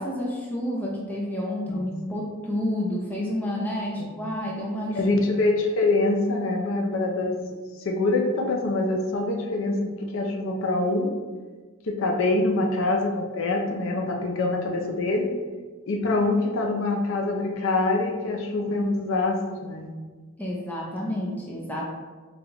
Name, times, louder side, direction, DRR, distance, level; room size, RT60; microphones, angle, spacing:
voice 1, 0.0-5.1 20.4-21.9, left 1 dB, 10° left, -3 dB, 0.5 m, -30 dB
voice 2, 5.0-7.4 7.8-11.1 11.8-15.3 15.9-19.9, left 2 dB, 65° left, 2 dB, 0.5 m, -25 dB
4.7 x 2.4 x 2.9 m, 1.4 s
head